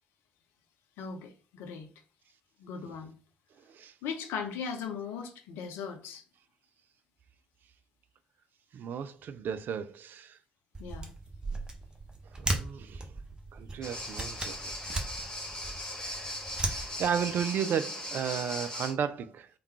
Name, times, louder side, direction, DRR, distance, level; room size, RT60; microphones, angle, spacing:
voice 1, 1.0-1.9 2.6-3.1 4.0-6.2 10.8-11.1, left 6 dB, 65° left, 0.7 m, -38 dB
voice 2, 8.7-10.4 12.3-13.0 13.5-15.0 16.7-19.5, right 8 dB, 50° right, 0.4 m, -34 dB
sound 1, 10.7-17.4, right 2 dB, 20° right, 0.9 m, -37 dB
sound 2, 13.8-18.9, left 1 dB, 15° left, 1.5 m, -38 dB
3.5 x 2.3 x 4.1 m
figure-of-eight pair, 40°, 4 cm